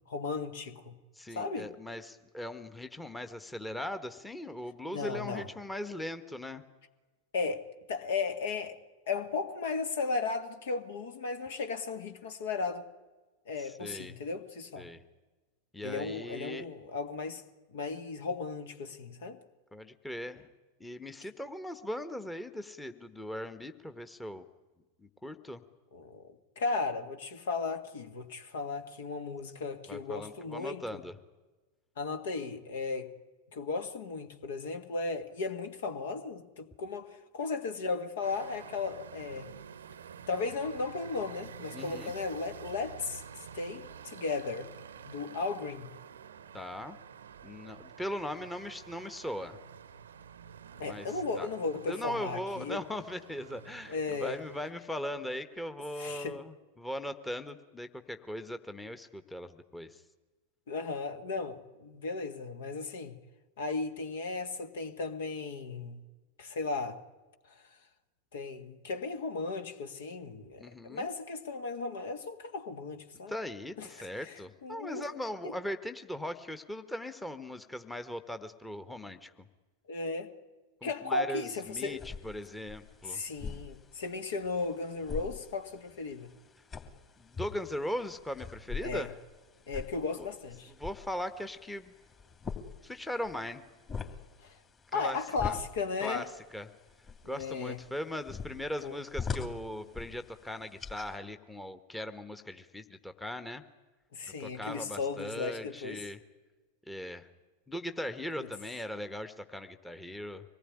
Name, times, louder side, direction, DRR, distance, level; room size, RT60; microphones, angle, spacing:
voice 1, 0.1-0.9 1.3-1.7 4.9-5.5 7.3-8.8 9.1-12.9 13.4-14.9 15.8-17.4 17.7-19.4 25.9-26.3 26.5-31.0 32.0-33.1 33.5-39.5 40.3-43.2 43.5-44.7 45.0-45.9 50.8-52.8 53.9-54.4 55.9-56.4 60.7-63.2 63.6-66.0 66.4-67.0 67.5-67.6 68.3-73.3 73.8-75.1 75.4-75.6 79.9-80.3 80.8-82.0 83.0-86.3 88.8-89.1 89.7-90.7 94.4-94.5 94.9-96.3 97.2-97.8 98.8-99.0 104.1-106.1 108.4-108.5, left 4 dB, 60° left, 1.7 m, -35 dB
voice 2, 1.2-6.6 13.6-14.2 14.8-15.0 15.7-16.7 19.7-20.5 20.8-24.4 25.0-25.6 29.9-31.2 41.7-42.1 46.5-47.0 47.4-49.6 50.8-51.1 51.4-51.5 51.9-60.0 70.6-71.1 73.3-79.3 80.8-82.0 82.2-83.2 87.2-89.1 90.2-90.3 90.8-91.9 92.8-93.6 94.9-95.2 95.4-95.5 96.0-96.3 96.5-96.7 97.2-103.6 104.4-106.2 106.9-107.3 107.7-110.4, left 1 dB, 5° left, 1.2 m, -39 dB
sound 1, 38.2-54.7, right 8 dB, 65° right, 0.8 m, -49 dB
sound 2, 81.6-101.1, left 5 dB, 25° left, 2.8 m, -44 dB
24.5 x 19.0 x 9.9 m
figure-of-eight pair, 90°, 0 cm